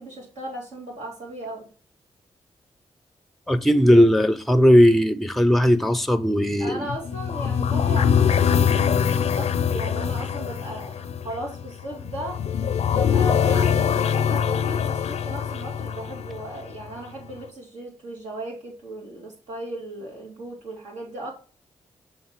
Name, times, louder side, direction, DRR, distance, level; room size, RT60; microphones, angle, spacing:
voice 1, 0.0-1.7 6.6-12.4 12.9-21.3, right 1 dB, 80° right, 2.6 m, -36 dB
voice 2, 3.5-6.9, equal, ahead, 0.5 m, -17 dB
sound 1, 6.9-17.0, left 7 dB, 70° left, 0.5 m, -23 dB
6.6 x 3.4 x 4.4 m
cardioid pair, 65°, 12 cm